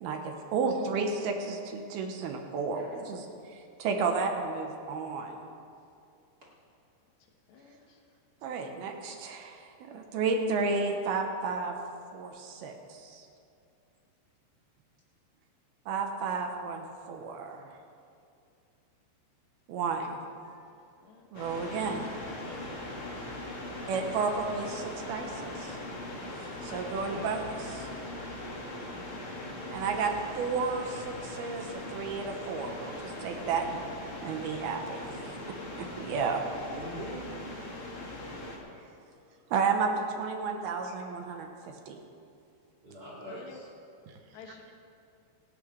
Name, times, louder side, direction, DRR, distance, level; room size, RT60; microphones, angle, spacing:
voice 1, 0.0-3.2 3.8-5.5 8.4-11.7 12.1-13.2 15.9-17.7 19.7-20.1 21.3-22.1 23.9-25.8 26.6-27.9 29.7-33.8 34.2-36.4 39.5-41.5 41.9-42.0, right 4 dB, 75° right, 3 dB, 2.7 m, -32 dB
voice 2, 7.5-8.0 20.4-20.6 21.0-21.3 26.7-28.2 43.3-43.6 44.3-44.7, left 4 dB, 80° left, 1 dB, 3.7 m, -51 dB
sound 1, 21.3-38.6, left 1 dB, 40° left, 2.0 m, -40 dB
voice 3, 27.1-27.5 30.7-31.0 32.8-32.9 36.6-37.5 42.8-43.7, equal, 25° right, -6 dB, 2.4 m, -45 dB
27.5 x 11.0 x 3.4 m, 2.5 s
omnidirectional pair, 5.0 m